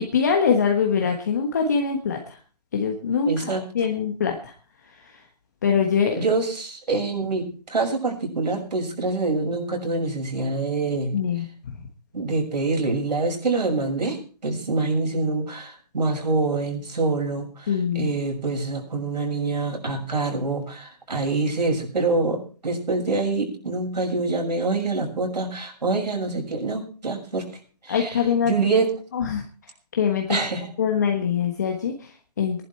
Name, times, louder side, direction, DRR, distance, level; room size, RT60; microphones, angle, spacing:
voice 1, 0.0-2.4 2.7-4.5 5.6-6.2 11.1-11.4 17.7-18.1 27.9-28.5 29.1-29.4 29.9-30.4 30.8-32.6, left 6 dB, 25° left, 3 dB, 1.3 m, -23 dB
voice 2, 3.3-3.6 6.1-11.2 12.1-27.5 27.8-28.9 30.3-30.7, right 3 dB, 80° right, 2 dB, 6.6 m, -25 dB
19.0 x 11.0 x 4.5 m, 0.38 s
hypercardioid pair, 180°, 21 cm